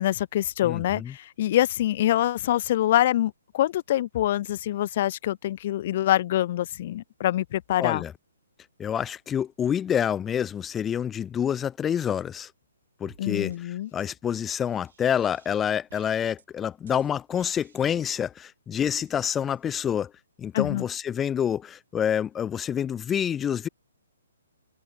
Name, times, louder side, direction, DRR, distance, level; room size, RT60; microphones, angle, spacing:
voice 1, 0.0-8.0 13.2-13.9 20.5-20.9, left 13 dB, 45° left, 1.3 m, -25 dB
voice 2, 0.6-1.1 7.8-8.1 8.8-12.5 13.0-20.1 20.4-23.7, left 9 dB, 15° left, 1.2 m, -27 dB
sound 1, 13.0-13.2 13.5-13.6 14.0-14.1 14.5-15.6 15.9-16.4 16.9-18.3 18.8-19.7, right 7 dB, 65° right, 8.0 m, -58 dB
figure-of-eight pair, 135°, 0 cm